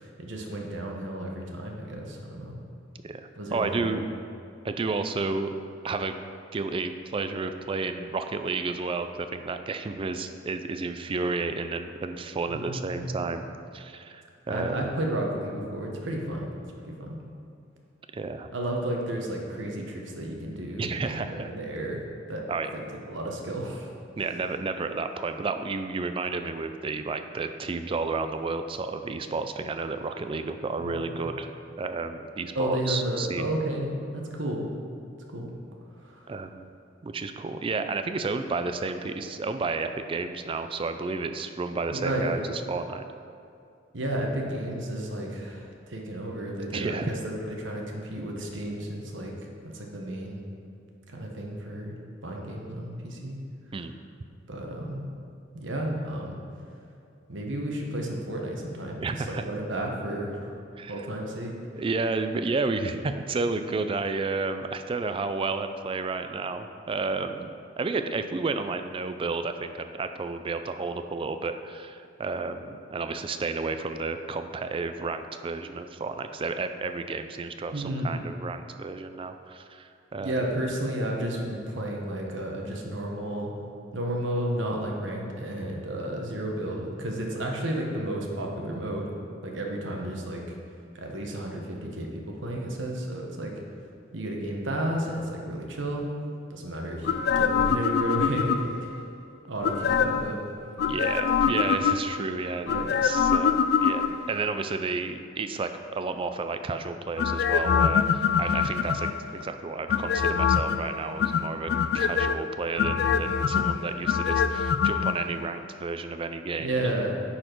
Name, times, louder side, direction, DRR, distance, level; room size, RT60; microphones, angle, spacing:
voice 1, 0.0-2.6 3.4-4.0 12.5-13.3 14.5-16.5 16.9-17.2 18.5-22.4 22.7-23.9 30.8-31.1 32.5-34.7 35.3-35.5 36.0-36.3 41.9-42.4 43.9-50.4 51.1-53.4 54.5-55.0 55.5-56.4 57.3-60.5 60.9-61.5 77.7-78.2 80.2-83.5 83.9-89.1 89.4-90.6 90.9-93.5 94.1-96.0 96.5-98.8 99.5-100.4 101.4-101.6 102.7-102.9 112.8-113.2 116.6-117.1, right 1 dB, 70° right, 0 dB, 1.2 m, -32 dB
voice 2, 3.0-4.0 4.6-5.6 5.8-6.2 6.5-13.4 13.7-14.9 18.1-18.5 20.8-21.5 22.5-22.7 24.2-31.5 31.8-33.5 36.3-36.7 37.0-42.4 42.7-43.0 46.7-47.1 53.7-53.9 59.0-59.4 60.8-61.1 61.7-80.4 100.9-116.7, right 3 dB, 30° right, 8 dB, 0.4 m, -31 dB
sound 1, 97.0-98.9 99.6-100.3 100.8-102.2 102.7-104.4 107.2-109.3 109.9-110.8 111.2-112.3 112.8-115.1 115.4-115.5, left 7 dB, 55° left, 0.3 m, -24 dB
10.0 x 4.3 x 4.5 m, 2.5 s
head